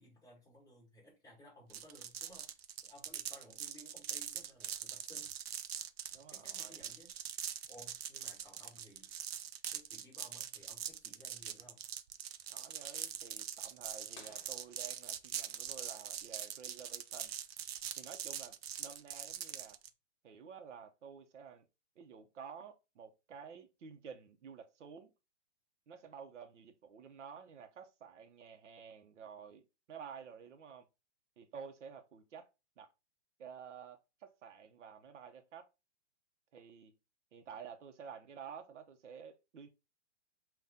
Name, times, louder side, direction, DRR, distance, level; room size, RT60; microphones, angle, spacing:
voice 1, 0.0-2.5 2.8-5.3 6.1-7.1 7.7-9.1 9.7-11.8, equal, 10° left, 2.7 m, -58 dB
sound 1, 1.7-19.9, right 9 dB, 60° right, 0.5 m, -43 dB
voice 2, 6.1-6.8 12.5-17.3 18.0-19.8 20.2-21.7 22.0-25.1 25.9-30.9 31.4-32.5 32.8-32.9 33.4-35.7 36.5-36.9 37.3-39.7, right 7 dB, 85° right, 1.0 m, -51 dB
sound 2, 14.1-15.8, left 5 dB, 40° left, 1.0 m, -60 dB
5.7 x 2.5 x 3.7 m
hypercardioid pair, 170°, 35 cm